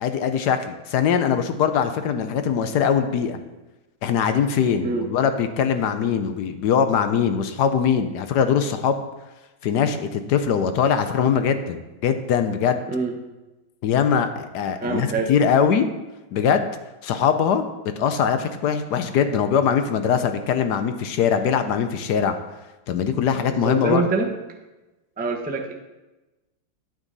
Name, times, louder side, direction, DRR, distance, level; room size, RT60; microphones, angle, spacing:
voice 1, 0.0-3.4 4.0-9.0 9.6-12.8 13.8-15.8 16.3-16.7 17.0-17.6 18.0-22.3 22.9-24.0, left 7 dB, 65° left, 9 dB, 1.1 m, -22 dB
voice 2, 14.8-15.3 23.5-24.3 25.2-25.7, right 3 dB, 10° right, 1 dB, 0.5 m, -25 dB
9.1 x 9.1 x 4.0 m, 1.1 s
omnidirectional pair, 2.2 m